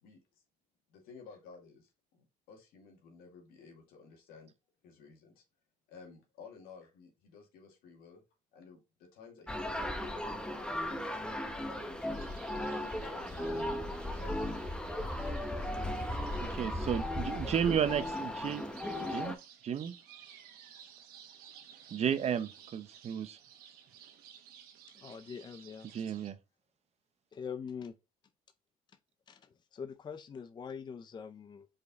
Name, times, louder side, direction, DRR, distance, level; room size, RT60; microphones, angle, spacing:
voice 1, 0.9-4.5 4.8-5.4 5.9-8.2 8.5-10.3 10.5-12.2 12.7-13.6 14.1-16.3, left 5 dB, 80° left, 2.2 m, -55 dB
sound 1, 9.5-19.3, left 1 dB, 5° left, 1.0 m, -36 dB
sound 2, 12.0-26.3, right 9 dB, 80° right, 1.2 m, -56 dB
voice 2, 16.4-18.6 19.0-19.4 19.6-19.9 21.9-23.4 25.9-26.4, right 8 dB, 45° right, 0.7 m, -33 dB
voice 3, 24.9-25.9 27.3-27.9 29.3-31.7, left 6 dB, 30° left, 0.5 m, -43 dB
5.1 x 4.6 x 4.1 m
cardioid pair, 100°, 15 cm